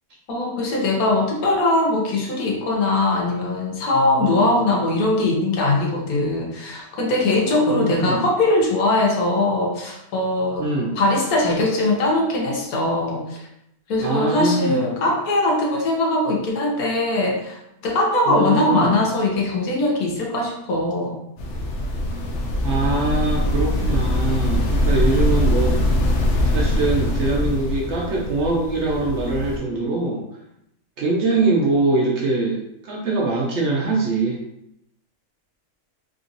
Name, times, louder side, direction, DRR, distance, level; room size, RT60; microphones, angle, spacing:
voice 1, 0.3-10.6 11.0-13.4 13.9-21.2, left 2 dB, 85° left, -1 dB, 1.3 m, -21 dB
voice 2, 7.6-8.2 10.6-11.0 14.0-14.8 18.3-19.0 22.6-25.8 26.5-30.2 31.0-34.4, right 2 dB, 65° right, -2 dB, 0.8 m, -23 dB
sound 1, 21.4-29.6, left 1 dB, 65° left, 0.8 m, -22 dB
3.7 x 2.7 x 2.5 m, 0.78 s
omnidirectional pair, 1.5 m